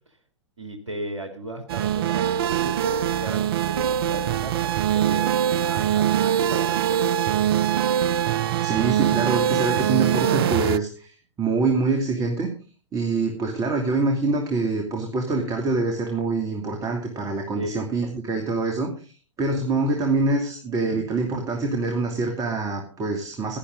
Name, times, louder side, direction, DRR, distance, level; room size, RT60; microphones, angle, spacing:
voice 1, 0.6-5.3 5.6-7.1 17.6-17.9, right 1 dB, 70° right, 5 dB, 2.5 m, -35 dB
sound 1, 1.7-10.8, right 10 dB, 50° right, 0.6 m, -23 dB
voice 2, 8.6-12.5 12.9-23.6, right 3 dB, 20° right, 3 dB, 2.7 m, -25 dB
17.0 x 11.5 x 3.9 m, 0.38 s
figure-of-eight pair, 105°, 16 cm